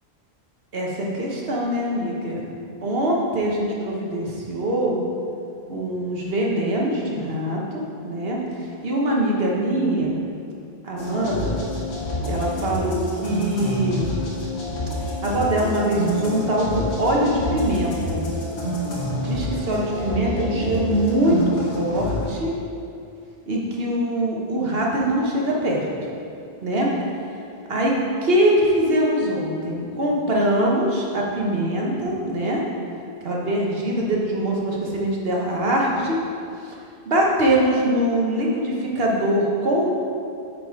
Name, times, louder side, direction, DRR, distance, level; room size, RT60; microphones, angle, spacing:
voice 1, 0.7-2.5 2.8-5.0 5.7-8.4 8.8-10.2 10.8-11.6 12.2-14.1 15.2-18.2 19.2-22.5 23.5-25.9 26.6-26.9 27.7-27.9 28.2-32.6 33.2-36.2 37.0-39.9, right 1 dB, 70° right, -3 dB, 1.3 m, -23 dB
sound 1, 11.0-22.3, left 1 dB, 90° left, 1.5 m, -28 dB
8.7 x 4.0 x 4.7 m, 2.5 s
omnidirectional pair, 1.1 m